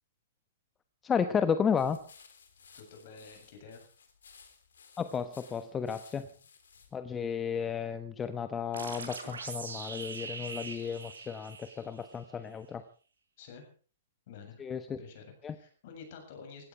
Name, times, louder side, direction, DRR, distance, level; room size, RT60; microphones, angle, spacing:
voice 1, 1.0-2.0 5.0-6.3 6.9-12.8 14.6-15.0 15.4-15.6, left 7 dB, 20° left, 11 dB, 1.0 m, -33 dB
sound 1, 1.8-6.9, left 6 dB, 70° left, 3.6 m, -58 dB
voice 2, 2.7-3.8 13.4-13.7 14.3-14.6 15.0-16.7, left 5 dB, 50° left, 4 dB, 7.6 m, -49 dB
sound 2, 8.7-12.2, right 4 dB, 75° right, 5.7 m, -42 dB
16.5 x 16.5 x 4.9 m, 0.40 s
figure-of-eight pair, 115°, 0 cm